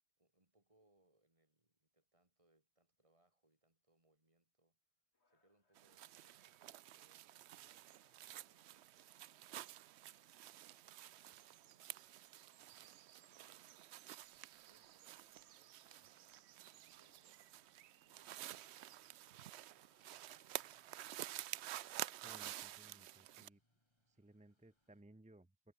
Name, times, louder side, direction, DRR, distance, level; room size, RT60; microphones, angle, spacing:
voice 1, 0.2-9.5 10.2-13.8 14.4-17.8 18.0-20.0, right 2 dB, 30° right, 2.8 m, -79 dB
sound 1, 5.1-22.5, left 3 dB, 80° left, 3.3 m, -84 dB
sound 2, 5.8-23.5, right 13 dB, 80° right, 0.8 m, -51 dB
sound 3, 7.2-25.0, left 1 dB, 25° left, 7.0 m, -87 dB
voice 2, 22.2-23.6 24.1-25.7, right 1 dB, 10° right, 0.4 m, -63 dB
omnidirectional pair, 1.1 m